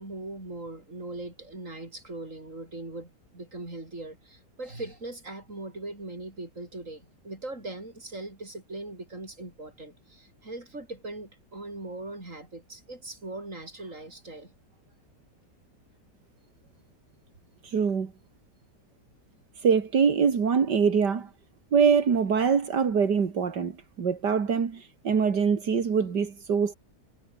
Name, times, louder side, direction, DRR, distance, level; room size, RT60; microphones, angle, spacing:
voice 1, 0.0-14.5, right 2 dB, 45° right, 6.5 m, -40 dB
voice 2, 17.6-18.1 19.6-21.3 21.7-26.7, right 6 dB, 80° right, 2.7 m, -24 dB
omnidirectional pair, 1.8 m